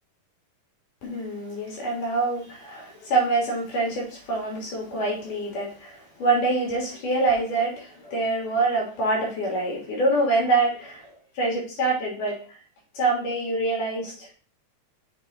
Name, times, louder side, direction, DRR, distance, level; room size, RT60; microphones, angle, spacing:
voice 1, 1.0-11.1 11.3-12.6 12.9-14.3, right 2 dB, 85° left, 4.2 m, -25 dB
7.5 x 4.4 x 4.3 m
omnidirectional pair, 3.6 m